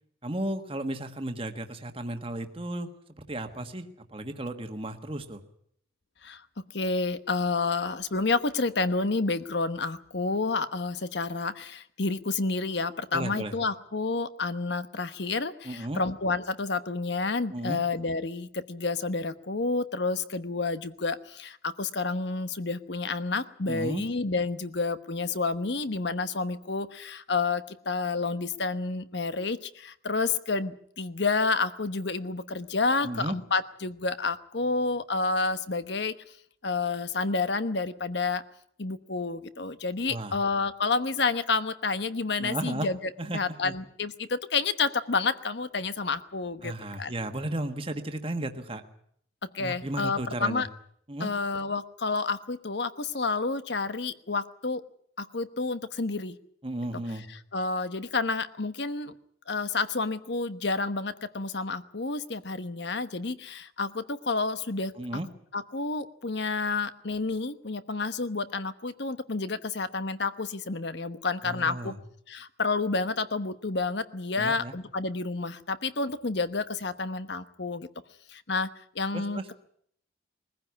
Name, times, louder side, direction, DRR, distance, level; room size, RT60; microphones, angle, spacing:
voice 1, 0.2-2.9 3.2-5.4 13.1-13.5 15.6-16.0 17.5-17.8 23.7-24.0 33.0-33.3 40.1-40.3 42.4-42.9 43.2-43.7 46.6-48.8 49.6-50.6 51.1-51.3 56.6-57.2 65.0-65.3 71.4-72.0 74.4-74.7 79.1-79.5, right 1 dB, 30° right, 6 dB, 1.5 m, -34 dB
voice 2, 6.7-36.1 36.6-38.4 38.8-43.0 43.3-46.7 47.0-47.1 49.5-50.7 51.2-54.8 55.2-56.4 57.3-59.2 59.5-64.9 65.5-71.9 72.3-77.9 78.3-78.7 78.9-79.5, left 3 dB, 60° left, 12 dB, 1.1 m, -29 dB
21.0 x 15.5 x 9.6 m, 0.66 s
head